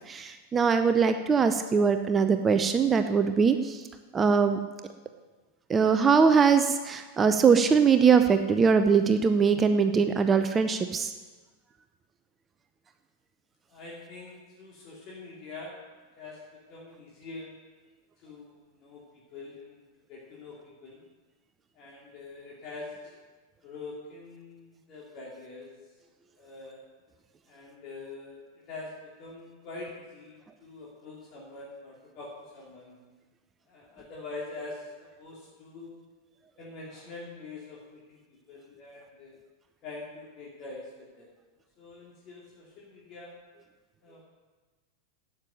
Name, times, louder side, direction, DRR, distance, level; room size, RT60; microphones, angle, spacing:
voice 1, 0.0-3.9 4.1-4.6 5.7-11.1, right 6 dB, 20° right, 8 dB, 0.7 m, -22 dB
voice 2, 13.7-15.8 16.2-17.5 18.2-19.8 20.1-21.0 21.7-23.2 23.6-25.7 26.3-26.8 27.5-32.9 33.7-36.0 36.6-39.3 39.8-41.3 41.8-43.3 44.0-44.2, left 3 dB, 35° left, -5 dB, 3.0 m, -44 dB
12.0 x 8.9 x 7.7 m, 1.3 s
figure-of-eight pair, 90°, 0 cm